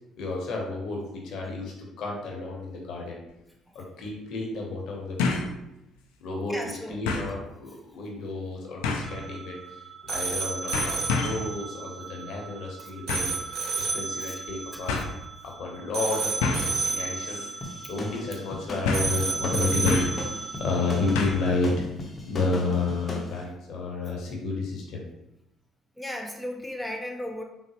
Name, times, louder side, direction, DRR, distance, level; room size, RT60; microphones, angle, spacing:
voice 1, 0.2-3.2 3.7-5.5 6.2-6.6 6.9-9.6 10.0-15.0 15.4-17.4 17.9-21.9 22.3-25.0, left 3 dB, 65° left, -1 dB, 0.8 m, -31 dB
sound 1, 3.3-3.4 5.2-5.5 6.0-6.1 7.1-7.3 8.8-9.2 10.1-10.4 10.7-11.5 13.1-13.4 14.4-14.5 14.9-15.1 16.4-16.8 17.3-17.5 17.8-17.9 18.8-19.2 19.9-20.2 21.2-21.5 21.8-21.9, left 4 dB, 85° left, 0.4 m, -28 dB
voice 2, 6.5-7.0 12.8-12.9 13.6-13.9 14.2-14.4 14.7-14.8 26.0-27.4, left 1 dB, ahead, 1 dB, 0.5 m, -36 dB
sound 2, 9.0-21.5, right 4 dB, 60° right, 0.5 m, -33 dB
sound 3, 17.6-23.3, left 1 dB, 40° left, 0.7 m, -38 dB
4.0 x 2.0 x 2.9 m, 0.90 s
hypercardioid pair, 60°, 0 cm